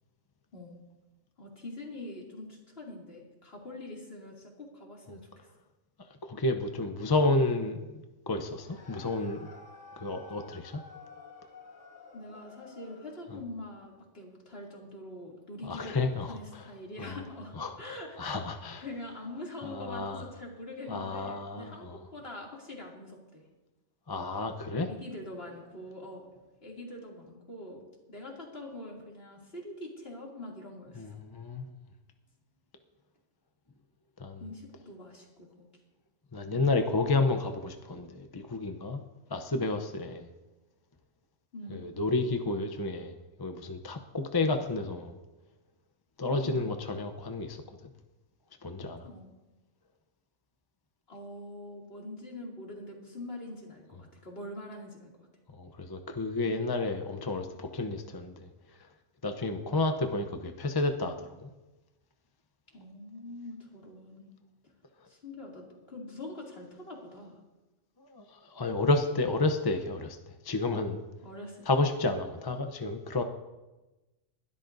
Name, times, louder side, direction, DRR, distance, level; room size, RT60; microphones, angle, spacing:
voice 1, 1.4-5.5 12.1-18.4 18.8-23.4 24.9-26.3 26.6-27.8 28.1-31.1 34.4-35.7 36.5-36.7 41.5-41.9 46.4-46.7 49.0-49.3 51.1-55.3 62.7-64.3 65.1-67.4 71.2-71.7, left 1 dB, 55° left, -2 dB, 3.0 m, -44 dB
voice 2, 6.2-9.5 10.0-10.8 15.6-16.4 17.0-17.2 17.5-18.8 19.6-20.2 20.9-22.0 24.1-24.9 30.9-31.7 34.2-34.4 36.3-39.0 39.3-40.3 41.7-43.1 43.4-45.2 46.2-47.6 48.6-49.1 55.6-58.5 59.2-61.5 68.0-70.2 70.4-71.0 71.7-73.2, left 2 dB, 25° left, 6 dB, 0.6 m, -31 dB
sound 1, 8.5-13.3, left 3 dB, 90° left, 2.0 m, -51 dB
21.0 x 12.5 x 2.6 m, 1.1 s
omnidirectional pair, 1.2 m